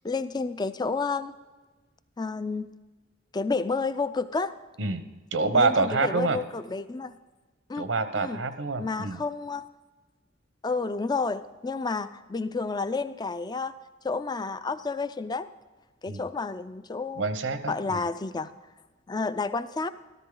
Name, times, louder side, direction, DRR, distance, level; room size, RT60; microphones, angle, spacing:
voice 1, 0.0-1.3 2.2-2.7 3.3-4.6 5.5-7.2 7.7-7.9 8.2-8.4 8.8-9.6 10.6-13.7 14.0-15.5 16.0-17.2 17.7-18.5 19.1-19.9, left 4 dB, 20° left, 13 dB, 0.5 m, -30 dB
voice 2, 4.8-6.4 7.8-9.2 16.1-16.3 17.2-18.0, right 3 dB, 85° right, 11 dB, 0.9 m, -27 dB
13.5 x 13.5 x 3.9 m, 1.3 s
head